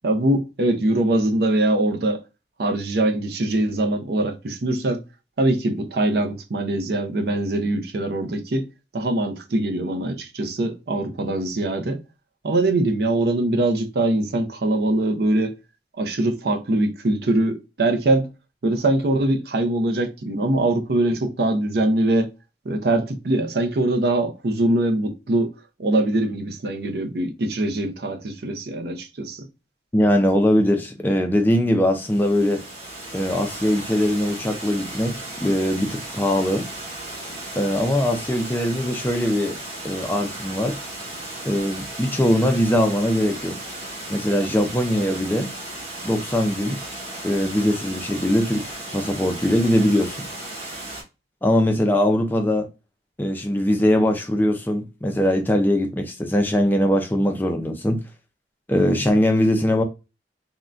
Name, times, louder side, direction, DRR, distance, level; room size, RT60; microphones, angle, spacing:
voice 1, 0.0-2.2 2.6-5.0 5.4-8.7 8.9-12.0 12.4-15.6 16.0-18.3 18.6-22.3 22.7-25.5 25.8-29.5, right 2 dB, 60° right, 0.5 m, -22 dB
voice 2, 29.9-32.6 33.1-36.7 37.6-39.5 39.8-40.8 41.4-43.6 44.1-45.5 46.0-46.8 47.2-50.2 51.4-52.7 53.2-58.0 58.7-59.8, left 1 dB, 10° left, 0.3 m, -21 dB
Water, 31.9-51.0, right 1 dB, 35° right, 1.1 m, -35 dB
3.6 x 2.1 x 2.3 m
head